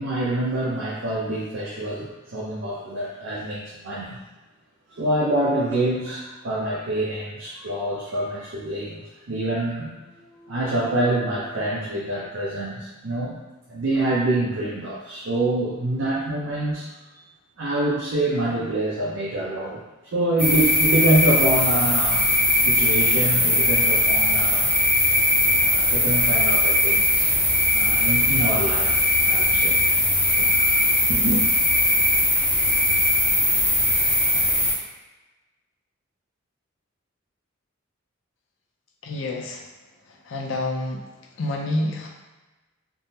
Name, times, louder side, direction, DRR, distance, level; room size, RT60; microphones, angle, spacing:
voice 1, 0.0-4.2 4.9-9.0 9.3-13.4 13.7-16.9 17.6-19.8 20.1-22.3 22.7-24.7 25.6-27.3 27.7-28.9 29.2-29.8 30.4-30.8 31.1-31.4, right 1 dB, 75° right, -6 dB, 0.5 m, -26 dB
sound 1, 20.4-34.7, left 1 dB, 5° left, 0.5 m, -20 dB
voice 2, 39.0-39.6 40.1-41.0 41.3-42.1, left 2 dB, 65° left, 1 dB, 0.5 m, -28 dB
3.5 x 2.0 x 2.7 m, 1.1 s
head